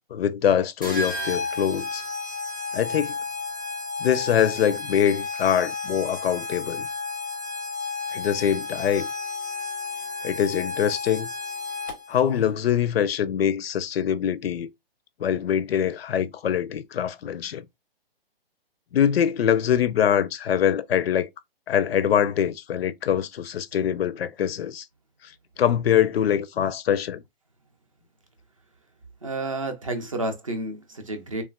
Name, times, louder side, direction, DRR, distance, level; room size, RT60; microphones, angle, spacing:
voice 1, 0.1-2.0 2.7-3.2 4.0-6.9 8.1-9.1 10.2-11.3 12.1-14.7 15.2-17.6 18.9-21.3 21.7-24.8 25.2-25.3 25.6-27.2, left 9 dB, 80° left, 0.5 m, -23 dB
sound 1, 0.8-12.2, left 4 dB, 20° left, 0.5 m, -32 dB
voice 2, 29.2-31.4, right 2 dB, 35° right, 0.5 m, -30 dB
3.2 x 2.3 x 2.2 m
hypercardioid pair, 180°, 30 cm